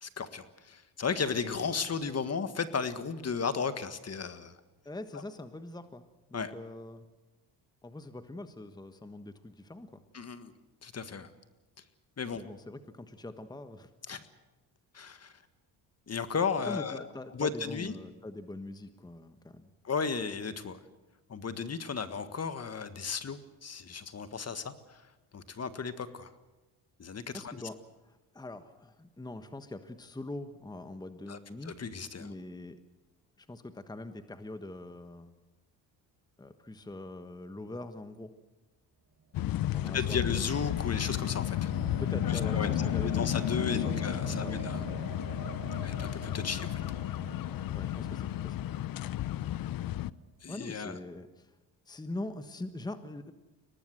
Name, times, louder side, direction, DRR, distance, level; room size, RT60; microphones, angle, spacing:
voice 1, 0.0-4.5 6.3-6.5 10.1-10.5 10.8-11.3 12.2-12.4 14.1-14.2 14.9-15.3 16.1-17.1 17.3-17.9 19.8-20.8 21.3-24.7 25.3-26.3 27.0-27.6 31.3-31.4 31.7-32.3 39.9-41.7 42.3-42.7 43.0-44.8 45.8-46.8 50.4-51.0, left 5 dB, 35° left, 11 dB, 1.7 m, -34 dB
voice 2, 4.8-6.0 6.3-7.1 7.8-10.0 12.3-13.9 16.6-19.7 27.3-27.8 28.0-31.8 32.2-32.8 33.4-35.3 36.4-38.3 39.7-40.3 42.0-43.2 43.7-44.6 47.7-48.7 50.5-51.5 51.9-53.3, left 2 dB, 10° left, 10 dB, 1.3 m, -43 dB
sound 1, 39.3-50.1, left 13 dB, 55° left, 0.7 m, -33 dB
sound 2, 39.5-49.7, right 6 dB, 35° right, 6.3 m, -45 dB
23.0 x 19.0 x 7.9 m, 1.1 s
cardioid pair, 85°, 42 cm